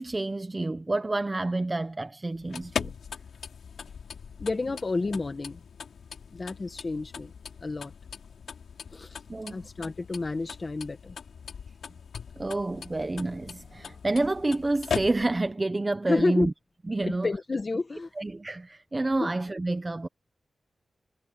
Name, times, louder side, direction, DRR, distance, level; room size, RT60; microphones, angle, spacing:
voice 1, 0.0-2.9 9.3-9.6 12.4-16.5 16.9-17.3 18.2-20.1, right 2 dB, 20° right, 0.8 m, -29 dB
sound 1, 2.3-15.5, left 6 dB, 85° left, 6.4 m, -40 dB
voice 2, 4.4-5.6 6.3-7.3 7.6-7.9 8.9-9.2 9.5-11.2 16.1-16.5 17.0-18.1, left 3 dB, 35° left, 1.5 m, -30 dB
wide cardioid pair, 125°, 0 cm